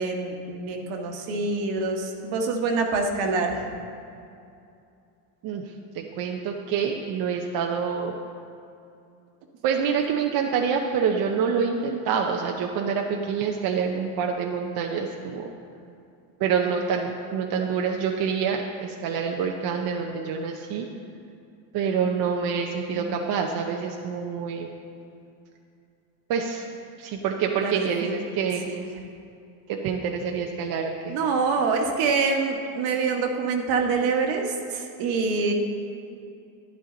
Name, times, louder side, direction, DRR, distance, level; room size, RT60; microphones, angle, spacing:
voice 1, 0.0-3.6 22.9-23.1 27.6-28.1 28.6-28.9 31.1-35.5, right 4 dB, 65° right, 2 dB, 1.5 m, -26 dB
voice 2, 6.0-8.1 9.6-15.5 16.4-20.9 21.7-24.7 26.3-26.6 27.0-28.6 29.7-31.2, right 6 dB, 45° right, 2 dB, 0.8 m, -26 dB
11.5 x 10.5 x 3.8 m, 2.5 s
supercardioid pair, 125°, 49 cm